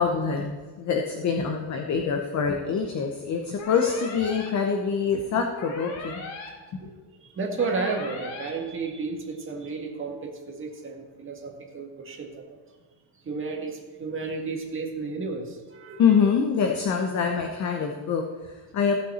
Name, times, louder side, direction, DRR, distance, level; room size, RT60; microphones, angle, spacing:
voice 1, 0.0-6.2 6.7-6.8 16.0-19.0, left 6 dB, 40° left, 4 dB, 0.9 m, -25 dB
sound 1, 3.6-4.5 5.6-6.5 7.6-8.5, left 3 dB, 80° left, 2.5 m, -38 dB
voice 2, 6.8-12.6 13.2-16.2, right 4 dB, 30° right, 1 dB, 1.8 m, -33 dB
16.0 x 5.7 x 4.3 m, 1.4 s
cardioid pair, 150°, 43 cm